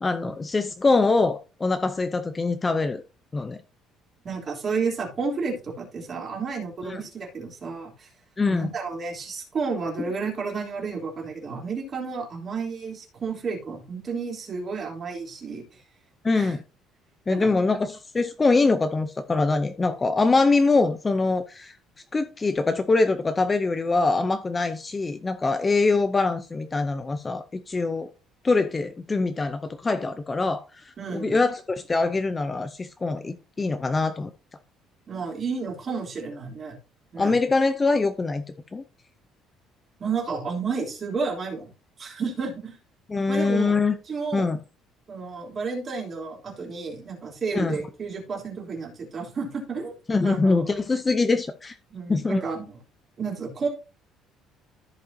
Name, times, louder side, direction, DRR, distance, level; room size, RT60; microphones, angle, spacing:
voice 1, 0.0-3.0 3.3-3.6 6.9-7.0 8.4-8.7 16.2-16.6 17.3-21.8 22.1-28.1 28.4-34.3 37.2-38.4 38.7-38.8 43.1-43.9 44.3-44.6 47.5-47.8 50.1-51.8 52.1-52.4, left 3 dB, 15° left, 0.5 m, -23 dB
voice 2, 4.2-8.1 8.5-15.8 16.3-16.5 17.3-17.5 31.0-31.4 35.1-36.8 37.1-37.3 40.0-41.7 42.0-42.8 43.3-43.7 44.1-44.5 45.1-49.9 50.2-50.7 51.9-52.7 53.2-53.7, right 5 dB, 30° right, 3.1 m, -31 dB
14.5 x 5.2 x 2.7 m
cardioid pair, 175°, 0 cm